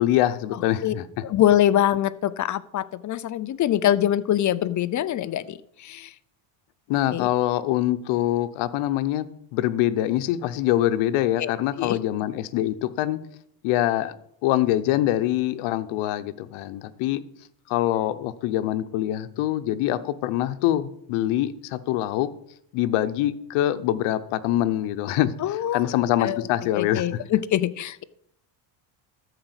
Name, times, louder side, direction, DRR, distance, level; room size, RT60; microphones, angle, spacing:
voice 1, 0.0-1.2 6.9-13.2 13.6-14.1 14.4-17.2 17.7-22.3 22.7-27.2, left 13 dB, 85° left, 12 dB, 0.9 m, -24 dB
voice 2, 1.2-5.6 5.8-6.1 7.1-7.3 11.4-11.5 11.8-12.0 25.4-25.9 26.2-26.4 26.8-28.0, left 12 dB, 40° left, 16 dB, 0.5 m, -23 dB
13.0 x 5.0 x 8.0 m, 0.74 s
cardioid pair, 125°, 48 cm